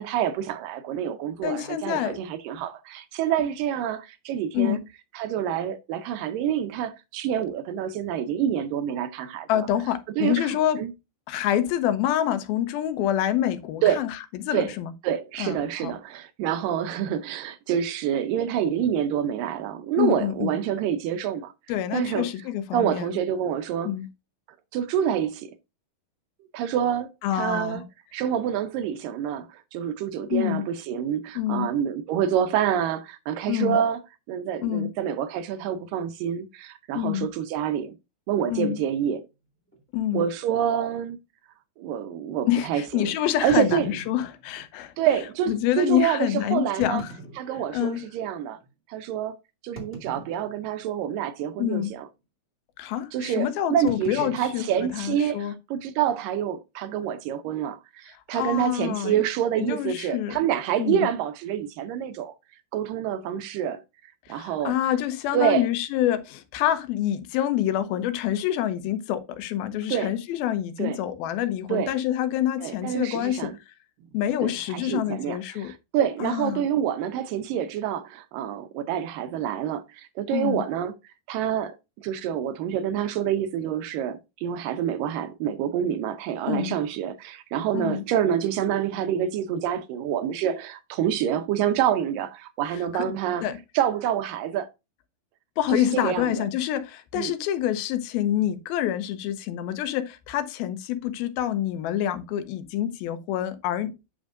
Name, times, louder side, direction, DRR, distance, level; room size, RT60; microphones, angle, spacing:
voice 1, 0.0-4.8 5.1-9.7 10.2-10.9 13.8-14.0 14.5-14.7 15.0-21.5 21.9-22.3 22.7-23.9 24.7-25.5 26.5-27.8 28.1-34.0 34.3-38.0 38.3-39.2 40.1-41.2 41.8-43.1 43.4-44.0 45.0-47.0 47.4-48.6 48.9-49.4 49.6-52.1 53.1-62.3 62.7-63.8 64.3-64.8 65.3-65.7 69.9-70.1 70.8-71.0 71.7-71.9 72.6-73.6 74.4-80.9 81.3-81.8 82.0-93.5 93.8-94.7 95.7-96.5 97.2-97.3, right 9 dB, 75° right, 2.2 m, -27 dB
voice 2, 1.4-2.2 4.5-4.8 9.5-10.8 11.3-14.9 15.4-15.9 20.0-20.6 21.7-23.2 23.8-24.1 27.2-27.8 30.3-30.7 31.4-31.7 33.5-33.8 34.6-34.9 37.0-37.3 38.5-38.8 39.9-40.2 42.5-44.9 45.5-47.1 47.7-48.0 51.6-51.9 52.8-55.5 58.1-59.2 59.6-60.4 60.8-61.1 64.3-73.4 73.7-73.8 74.1-75.7 76.2-76.6 80.3-80.6 86.5-86.8 87.7-88.0 92.9-93.1 93.4-93.6 95.6-103.9, left 11 dB, 90° left, 2.7 m, -27 dB
sound 1, 38.8-38.9 39.7-39.8 40.1-40.2 40.8-40.9 43.5-44.7 45.5-45.6 46.6-48.1 48.6-48.7 49.8-50.8 51.1-51.5 51.7-52.1 53.9-55.5, right 2 dB, 5° left, 1.0 m, -43 dB
8.7 x 6.2 x 2.5 m
omnidirectional pair, 4.2 m